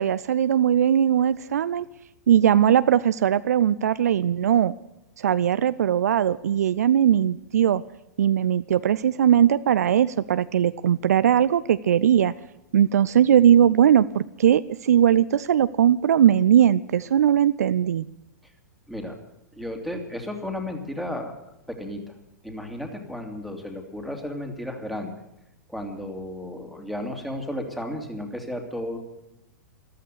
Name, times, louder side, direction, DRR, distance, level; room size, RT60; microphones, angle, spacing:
voice 1, 0.0-1.9 2.3-4.7 5.2-7.8 8.2-12.3 12.7-18.1, right 9 dB, 60° right, 15 dB, 0.5 m, -19 dB
voice 2, 19.5-22.1 22.4-25.1 25.7-29.0, left 1 dB, ahead, 3 dB, 2.5 m, -33 dB
14.5 x 13.5 x 6.8 m, 0.88 s
figure-of-eight pair, 105°, 10 cm